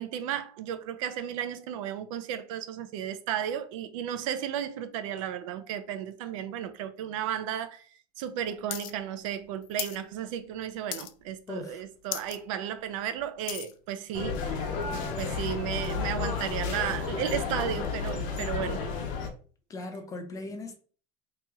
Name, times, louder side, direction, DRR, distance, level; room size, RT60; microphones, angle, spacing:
voice 1, 0.0-7.9 8.2-14.8 15.2-18.8, right 10 dB, 85° right, 0.6 m, -34 dB
sound 1, 8.7-8.9 9.2-10.0 10.4-10.6 10.9-11.4 11.7-11.8 12.0-12.4 12.8-13.7 14.4-14.5, left 13 dB, 90° left, 0.4 m, -36 dB
voice 2, 11.5-11.8 14.9-15.2 19.7-20.7, left 2 dB, 20° left, 0.6 m, -39 dB
sound 2, 14.1-19.3, left 5 dB, 55° left, 0.8 m, -32 dB
3.0 x 3.0 x 3.5 m
supercardioid pair, 145°, 16 cm